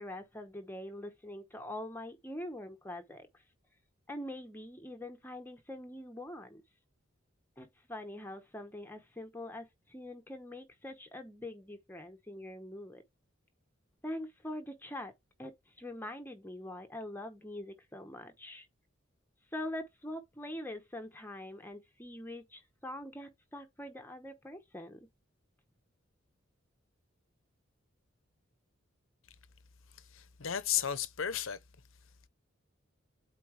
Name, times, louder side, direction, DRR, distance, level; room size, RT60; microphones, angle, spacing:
voice 1, 0.0-3.3 4.1-6.6 7.6-13.0 14.0-15.1 15.4-18.7 19.5-25.1, left 1 dB, 10° left, 0.9 m, -44 dB
voice 2, 30.0-31.6, left 9 dB, 80° left, 0.8 m, -34 dB
8.4 x 3.9 x 3.3 m
head